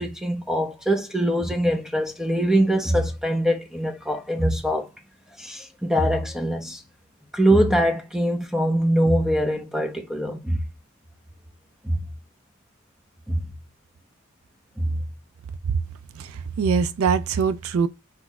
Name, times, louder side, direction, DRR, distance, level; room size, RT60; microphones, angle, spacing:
voice 1, 0.0-4.9 5.4-6.8 7.3-10.6 11.8-12.1 13.3-13.4 14.8-15.0, equal, 5° right, 0.8 m, -23 dB
voice 2, 16.2-17.9, right 5 dB, 75° right, 0.4 m, -23 dB
5.9 x 3.1 x 2.4 m
head